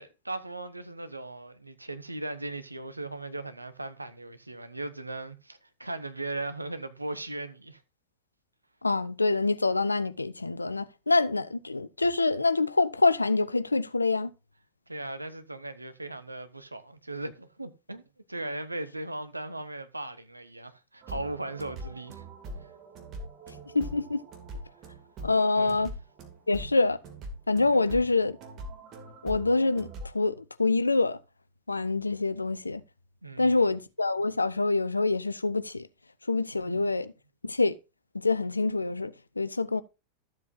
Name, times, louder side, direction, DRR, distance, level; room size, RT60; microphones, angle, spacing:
voice 1, 0.0-7.8 14.9-18.0 18.3-22.2 25.6-25.9 27.7-28.0 33.2-33.7 36.7-36.8, right 2 dB, 85° right, 1.0 m, -38 dB
voice 2, 8.8-14.3 23.7-24.2 25.2-25.9 26.5-27.0 27.5-28.4 29.2-29.9 30.1-31.2 31.7-32.8 33.4-35.9 36.3-37.1 37.4-37.8 38.2-39.8, left 3 dB, 80° left, 0.6 m, -26 dB
sound 1, 21.0-30.1, right 1 dB, 35° right, 2.3 m, -42 dB
13.5 x 7.6 x 2.6 m
figure-of-eight pair, 90°, 0 cm